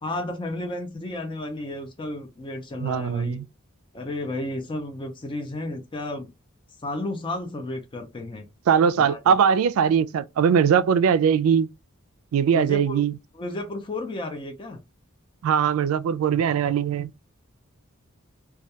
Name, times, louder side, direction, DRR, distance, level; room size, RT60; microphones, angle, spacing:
voice 1, 0.0-3.4 3.9-6.3 6.8-8.5 9.0-9.4 12.5-13.0 13.3-14.8, left 2 dB, 25° left, 0.4 m, -32 dB
voice 2, 2.8-3.4 8.7-11.7 12.3-13.1 15.4-17.1, right 7 dB, 80° right, 0.3 m, -21 dB
2.3 x 2.2 x 2.7 m
head